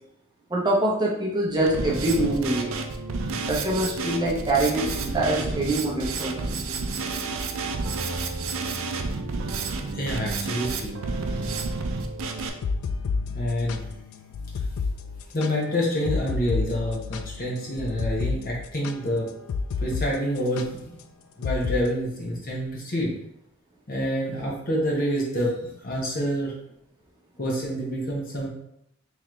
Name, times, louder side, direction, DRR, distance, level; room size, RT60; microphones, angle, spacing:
voice 1, 0.5-2.7 3.5-6.5 6.9-7.0, right 1 dB, 20° right, -4 dB, 0.7 m, -24 dB
Drum kit, 1.7-12.5, right 3 dB, 70° right, 0.4 m, -30 dB
voice 2, 9.8-10.9 13.3-13.8 15.3-19.3 19.8-20.9 21.4-23.1 23.9-25.5 25.8-26.5 27.4-28.5, equal, 45° left, -3 dB, 0.9 m, -27 dB
sound 1, 12.4-20.1 20.4-20.7 21.4-21.8, left 4 dB, 80° left, 0.3 m, -30 dB
3.7 x 3.1 x 3.1 m, 0.76 s
head